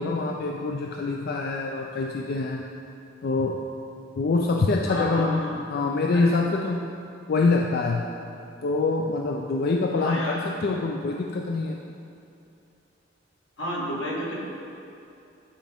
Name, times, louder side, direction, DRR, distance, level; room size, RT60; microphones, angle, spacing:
voice 1, 0.0-2.6 3.2-3.6 4.2-6.8 7.3-8.1 8.6-11.8, left 3 dB, 55° left, 1 dB, 0.4 m, -25 dB
voice 2, 4.9-5.5 6.1-6.3 10.0-10.5 13.6-14.3, left 1 dB, 85° left, -4 dB, 1.5 m, -30 dB
10.0 x 4.9 x 3.5 m, 2.7 s
head